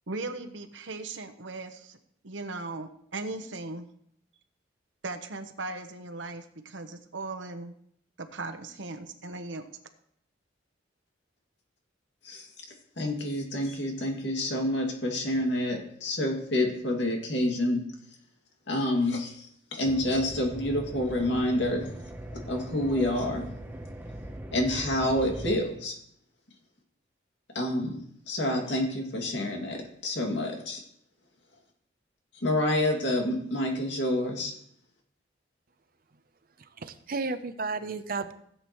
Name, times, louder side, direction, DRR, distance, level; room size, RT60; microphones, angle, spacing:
voice 1, 0.1-2.0 2.2-3.9 5.0-7.7 8.2-9.7, right 3 dB, 75° right, 7 dB, 1.0 m, -38 dB
voice 2, 13.0-17.8 18.7-21.9 22.5-23.5 24.5-26.0 27.5-30.8 32.3-34.5, left 1 dB, 70° left, 1 dB, 2.3 m, -28 dB
sound 1, 19.9-25.6, right 1 dB, 10° right, 0.8 m, -40 dB
voice 3, 36.6-38.3, right 3 dB, 50° right, 10 dB, 0.7 m, -33 dB
16.0 x 8.0 x 3.1 m, 0.70 s
head